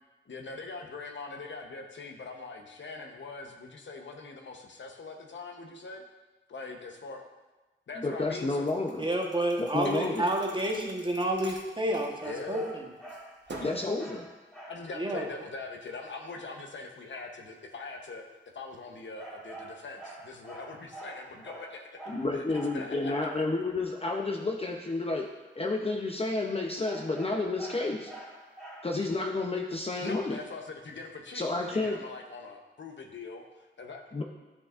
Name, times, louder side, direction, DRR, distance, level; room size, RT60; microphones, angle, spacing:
voice 1, 0.3-6.0 6.5-7.2 7.9-8.6 9.8-10.2 12.2-12.7 14.7-18.3 18.5-21.9 22.3-23.1 30.0-33.5 33.8-34.0, left 3 dB, 65° left, 2 dB, 0.9 m, -42 dB
voice 2, 8.0-9.0 9.6-10.2 13.6-14.2 22.1-25.3 25.6-28.1 28.8-30.4 31.3-32.0 34.1-34.2, left 3 dB, 30° left, 1 dB, 0.6 m, -30 dB
Thump thud, 8.7-12.7 13.1-13.9, right 2 dB, 60° right, 0.9 m, -48 dB
voice 3, 9.0-12.8 14.9-15.3, right 1 dB, 25° right, 1 dB, 1.1 m, -30 dB
sound 1, 12.2-14.9 19.2-23.5 26.8-29.1, right 1 dB, 5° left, 1.8 m, -46 dB
10.5 x 5.9 x 2.5 m, 1.1 s
wide cardioid pair, 75°, 21 cm